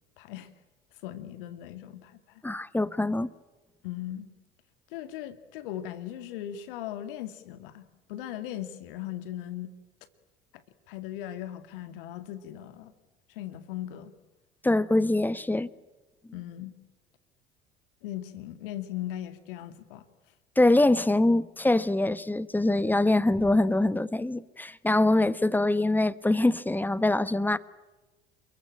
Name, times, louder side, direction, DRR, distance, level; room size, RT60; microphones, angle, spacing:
voice 1, 0.2-0.5 1.0-2.4 3.8-4.3 4.9-9.7 10.5-12.9 13.3-14.1 16.3-16.7 18.0-20.0, left 12 dB, 65° left, 2.3 m, -38 dB
voice 2, 2.4-3.3 14.6-15.7 20.6-27.6, left 2 dB, 5° left, 1.1 m, -24 dB
28.5 x 22.5 x 9.0 m
figure-of-eight pair, 65°, 29 cm